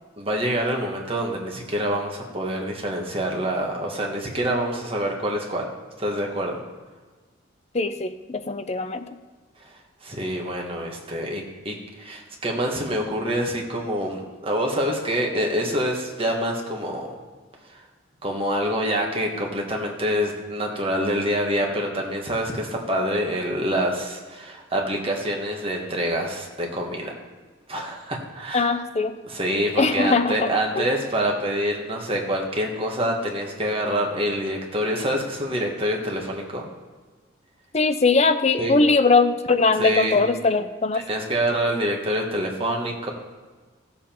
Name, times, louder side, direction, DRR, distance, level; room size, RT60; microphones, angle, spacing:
voice 1, 0.2-5.7 6.0-6.6 10.0-17.2 17.7-17.8 18.2-27.1 27.7-28.7 29.2-36.6 38.6-38.8 39.8-40.2 40.9-43.1, equal, 30° right, 0 dB, 1.5 m, -26 dB
voice 2, 7.7-9.0 28.5-29.2 29.8-30.5 30.8-30.9 37.7-41.0, left 3 dB, 35° left, 9 dB, 0.6 m, -21 dB
15.0 x 7.2 x 4.5 m, 1.4 s
head